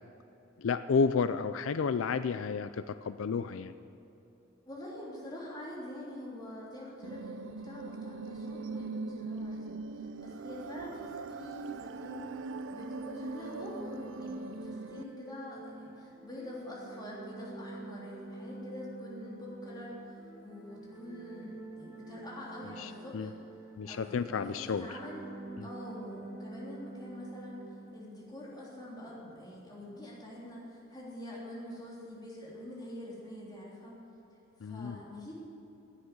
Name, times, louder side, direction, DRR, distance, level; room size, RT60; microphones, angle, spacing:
voice 1, 0.6-3.7 22.8-23.3 23.8-24.9 34.6-35.0, left 5 dB, 80° left, 12 dB, 0.4 m, -31 dB
voice 2, 4.6-23.3 23.8-25.3 25.6-34.0 34.6-35.3, left 1 dB, 20° left, -5 dB, 3.4 m, -45 dB
sound 1, 7.0-15.0, right 4 dB, 65° right, 0.4 m, -41 dB
sound 2, 12.5-28.2, right 2 dB, 15° right, 3.2 m, -47 dB
11.5 x 8.9 x 9.4 m, 2.9 s
head